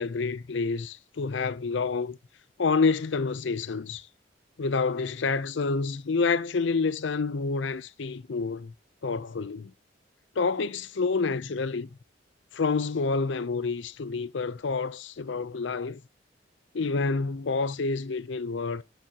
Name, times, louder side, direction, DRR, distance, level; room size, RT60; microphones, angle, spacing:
voice 1, 0.0-2.2 2.6-4.1 4.6-8.7 9.0-9.7 10.4-11.9 12.5-16.0 16.7-18.8, left 4 dB, 70° left, 0.6 m, -28 dB
12.0 x 7.0 x 2.8 m
head